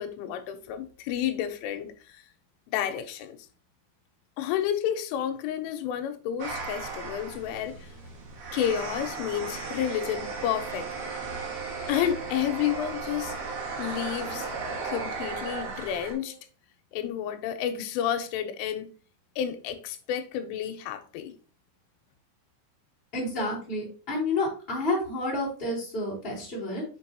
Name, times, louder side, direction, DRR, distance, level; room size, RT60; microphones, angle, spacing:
voice 1, 0.0-2.2 2.7-3.4 4.4-7.9 8.5-11.2 11.9-13.3 13.8-14.5 14.8-16.4 16.9-18.9 19.4-21.3, left 10 dB, 85° left, 3.1 m, -30 dB
sound 1, 6.4-16.1, right 4 dB, 60° right, 2.4 m, -36 dB
Wind instrument woodwind instrument, 9.8-16.5, right 14 dB, 80° right, 3.3 m, -44 dB
voice 2, 23.1-26.8, left 2 dB, 20° left, 1.6 m, -30 dB
6.7 x 5.3 x 2.8 m
omnidirectional pair, 5.8 m